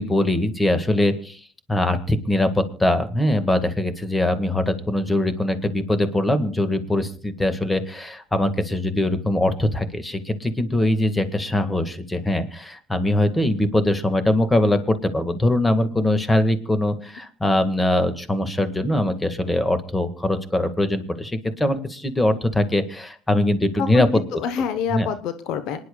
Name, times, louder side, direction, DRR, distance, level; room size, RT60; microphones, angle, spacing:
voice 1, 0.0-1.4 1.7-24.4 24.9-25.1, left 1 dB, 15° left, 10 dB, 1.8 m, -22 dB
voice 2, 23.8-25.8, left 7 dB, 70° left, 11 dB, 0.9 m, -27 dB
26.5 x 10.5 x 2.3 m, 0.40 s
hypercardioid pair, 75°, 0 cm